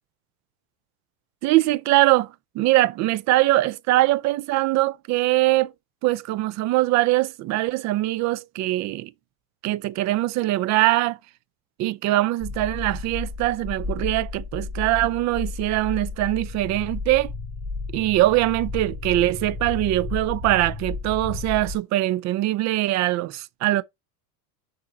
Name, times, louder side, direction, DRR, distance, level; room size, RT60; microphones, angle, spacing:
voice 1, 1.4-5.7 6.0-9.1 9.6-11.2 11.8-17.3 17.9-23.8, right 17 dB, 40° right, 0.5 m, -22 dB
sound 1, 12.4-21.8, left 3 dB, 10° right, 1.8 m, -33 dB
6.4 x 2.9 x 5.3 m
supercardioid pair, 125°, 43 cm